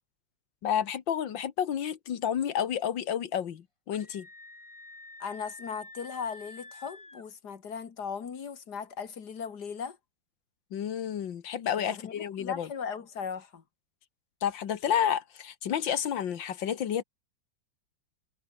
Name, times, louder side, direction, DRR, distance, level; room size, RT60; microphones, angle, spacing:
voice 1, 0.6-4.3 10.7-12.7 14.4-17.0, left 9 dB, 90° left, 2.1 m, -30 dB
Screaming, 3.9-7.3, left 2 dB, 15° left, 2.2 m, -49 dB
voice 2, 5.2-10.0 11.8-13.6, left 6 dB, 60° left, 2.3 m, -38 dB
omnidirectional pair, 2.0 m